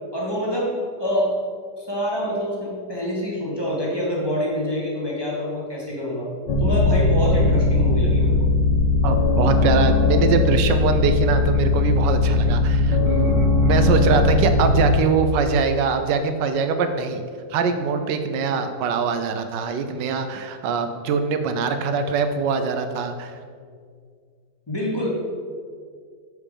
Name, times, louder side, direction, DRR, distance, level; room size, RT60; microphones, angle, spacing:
voice 1, 0.1-1.3 1.8-6.3 6.6-8.4 24.7-25.1, equal, 15° left, -5 dB, 1.3 m, -26 dB
sound 1, 6.5-14.9, left 3 dB, 75° left, 1.8 m, -19 dB
voice 2, 9.0-17.2 17.5-23.4, right 5 dB, 80° right, 8 dB, 1.3 m, -23 dB
7.2 x 5.0 x 5.0 m, 2.1 s
omnidirectional pair, 1.9 m